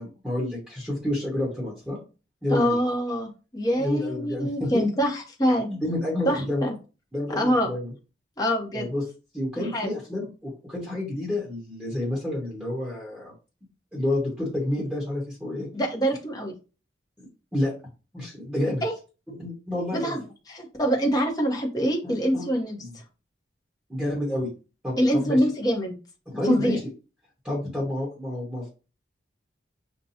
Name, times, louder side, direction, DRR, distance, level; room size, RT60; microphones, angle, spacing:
voice 1, 0.0-2.0 2.4-2.8 3.8-4.8 5.7-6.7 7.1-7.9 8.7-9.0 9.3-13.3 13.9-15.7 17.2-17.7 18.1-18.8 19.3-20.1 22.0-22.5 22.8-22.9 23.9-24.5 24.8-25.4 26.3-26.8 27.4-28.7, left 1 dB, 5° right, -6 dB, 1.1 m, -29 dB
voice 2, 2.5-5.7 6.2-6.7 7.3-7.7 8.4-8.9 9.6-9.9 15.7-16.5 18.8-18.9 19.9-20.2 20.5-23.0 25.0-26.0 26.4-26.8, equal, 20° left, 0 dB, 0.8 m, -25 dB
5.4 x 2.2 x 2.8 m, 0.33 s
head